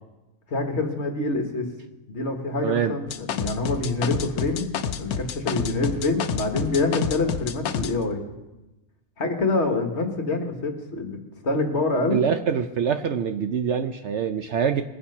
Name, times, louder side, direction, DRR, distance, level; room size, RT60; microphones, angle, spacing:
voice 1, 0.5-1.7 2.1-8.2 9.2-12.2, left 2 dB, 50° left, 4 dB, 1.7 m, -26 dB
voice 2, 2.6-3.0 12.1-14.8, right 7 dB, 60° right, 8 dB, 0.8 m, -24 dB
sound 1, 3.1-7.9, left 7 dB, 85° left, 1.2 m, -29 dB
21.5 x 7.2 x 5.5 m, 1.0 s
omnidirectional pair, 1.5 m